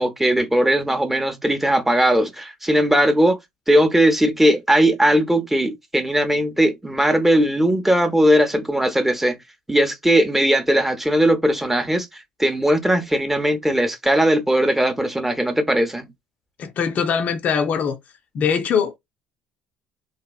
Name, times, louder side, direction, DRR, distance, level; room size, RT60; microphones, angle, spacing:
voice 1, 0.0-3.4 3.7-9.4 9.7-12.1 12.4-16.1, right 1 dB, 5° right, 0.7 m, -18 dB
voice 2, 16.6-18.0 18.3-18.9, left 6 dB, 50° left, 0.5 m, -21 dB
3.1 x 2.3 x 2.3 m
hypercardioid pair, 60°, 3 cm